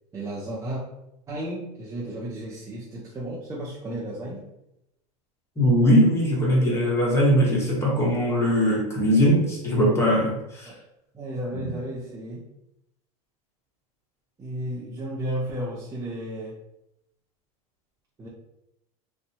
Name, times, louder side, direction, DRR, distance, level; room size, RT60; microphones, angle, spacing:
voice 1, 0.1-0.8 1.3-4.5 10.6-10.8 11.1-12.4 14.4-16.6 18.2-18.3, right 1 dB, 15° right, -5 dB, 0.5 m, -33 dB
voice 2, 5.6-10.7 11.5-11.7, equal, 15° left, -4 dB, 1.0 m, -21 dB
2.6 x 2.1 x 2.7 m, 0.84 s
hypercardioid pair, 105°, 20 cm